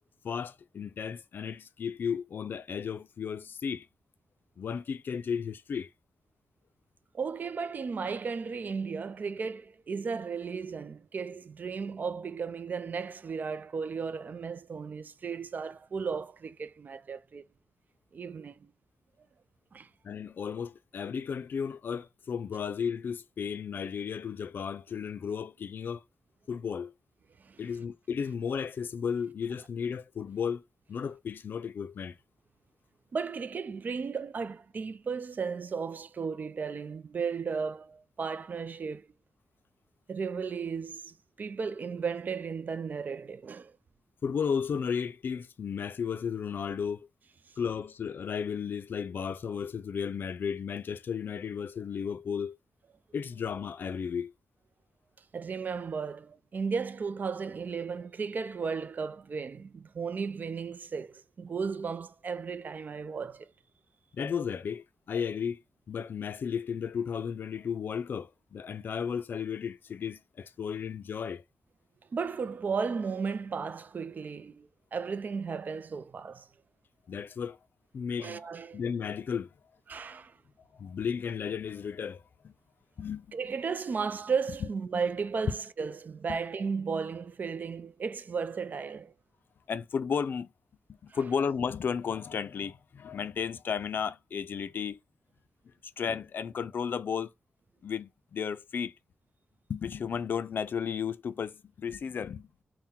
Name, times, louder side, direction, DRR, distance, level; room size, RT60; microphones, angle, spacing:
voice 1, 0.2-3.9 4.6-5.9 20.0-26.0 26.5-26.9 27.6-30.6 30.9-32.2 44.2-47.1 47.6-52.6 53.1-54.3 64.1-65.6 65.9-71.4 77.1-77.6 77.9-79.5 80.8-82.5 83.0-83.4 84.6-84.7 86.3-86.4 89.7-90.5 90.9-95.0 96.0-97.3 97.8-98.9 99.7-102.5, left 7 dB, 75° left, 0.4 m, -34 dB
voice 2, 7.1-17.4 18.1-18.6 19.7-19.9 27.4-27.6 33.1-39.1 40.1-43.7 55.3-63.5 72.1-76.5 78.2-78.8 79.9-80.3 83.3-89.1 91.1-91.2, right 5 dB, 55° right, 0.4 m, -35 dB
3.6 x 2.1 x 4.2 m
wide cardioid pair, 90°, 4 cm